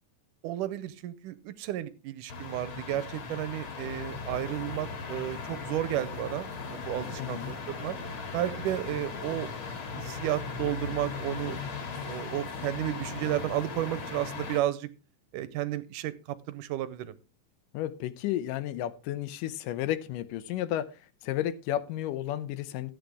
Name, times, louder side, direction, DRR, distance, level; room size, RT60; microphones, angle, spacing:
voice 1, 0.4-7.9 8.3-9.5 9.9-11.6 12.1-14.9 15.3-17.2, right 13 dB, 80° right, 2.2 m, -33 dB
sound 1, 2.3-14.6, left 5 dB, 45° left, 2.2 m, -38 dB
voice 2, 7.2-7.5 17.7-20.9 21.2-22.9, left 12 dB, 80° left, 2.3 m, -32 dB
14.0 x 9.0 x 3.5 m
omnidirectional pair, 3.8 m